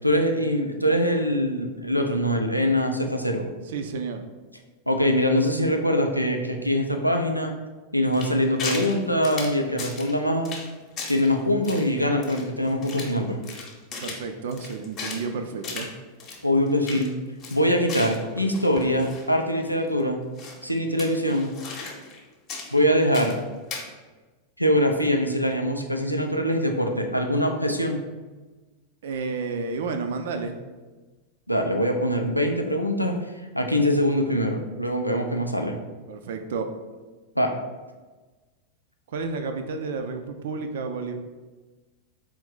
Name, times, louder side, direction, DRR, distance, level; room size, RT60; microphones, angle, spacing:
voice 1, 0.0-3.5 4.9-7.5 7.9-10.5 11.1-13.4 16.4-17.1 17.5-20.2 20.6-21.5 22.7-23.3 24.6-28.0 31.5-33.1 33.5-35.8 37.4-37.5, equal, 90° left, 3 dB, 0.4 m, -23 dB
voice 2, 3.7-4.2 14.0-15.9 29.0-30.6 36.1-36.7 39.1-41.1, right 4 dB, 60° right, 7 dB, 0.4 m, -31 dB
sound 1, 8.1-8.9 9.2-10.1 10.4-10.7 11.0-11.3 11.6-13.2 13.4-15.2 15.6-15.9 16.2-16.4 16.7-17.1 17.4-19.3 19.6-19.7 20.4-20.6 21.0-22.2 22.5-23.4 23.7-23.8, left 4 dB, 35° left, 0.9 m, -36 dB
4.2 x 2.5 x 3.9 m, 1.3 s
figure-of-eight pair, 90°, 0 cm